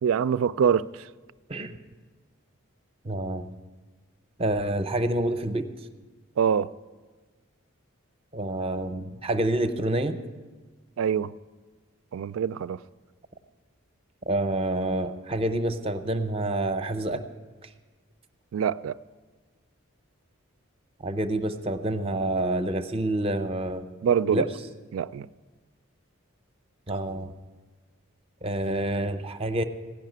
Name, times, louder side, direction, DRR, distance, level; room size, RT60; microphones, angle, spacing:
voice 1, 0.0-1.1 6.4-6.7 11.0-11.3 12.1-12.8 18.5-18.9 24.0-24.5 24.9-25.3, right 7 dB, 70° right, 0.3 m, -24 dB
voice 2, 3.0-3.5 4.4-5.7 8.3-10.2 14.3-17.2 21.0-23.8 24.3-24.5 26.9-27.3 28.4-29.6, right 1 dB, 25° right, 0.6 m, -27 dB
16.0 x 5.7 x 9.2 m
head